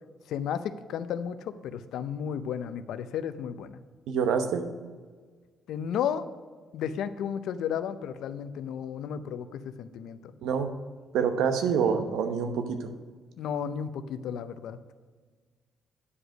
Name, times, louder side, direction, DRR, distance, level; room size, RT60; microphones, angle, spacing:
voice 1, 0.3-3.7 5.7-6.3 6.7-10.3 13.4-14.8, left 8 dB, 80° left, 12 dB, 0.5 m, -33 dB
voice 2, 4.1-4.6 10.4-10.7 11.1-12.9, right 6 dB, 85° right, 8 dB, 0.9 m, -26 dB
9.8 x 5.0 x 6.4 m, 1.5 s
cardioid pair, 90°, 0 cm